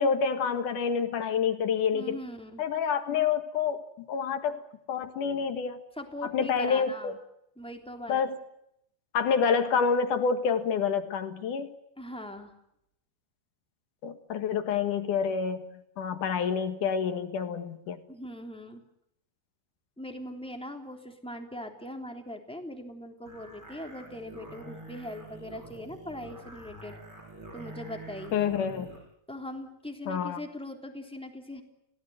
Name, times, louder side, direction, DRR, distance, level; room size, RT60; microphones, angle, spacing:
voice 1, 0.0-2.2 2.6-4.6 4.9-5.8 6.3-7.1 8.1-8.4 9.1-11.7 14.0-15.7 16.0-18.0 28.3-28.9 30.1-30.4, left 6 dB, 60° left, 8 dB, 2.8 m, -28 dB
voice 2, 1.9-2.6 6.0-7.2 7.6-8.3 12.0-12.5 18.1-18.8 20.0-26.9 27.5-28.5 29.3-31.6, left 1 dB, ahead, 3 dB, 2.5 m, -40 dB
sound 1, 23.3-29.0, right 2 dB, 25° right, 7.9 m, -46 dB
29.5 x 17.5 x 9.3 m, 0.78 s
omnidirectional pair, 4.8 m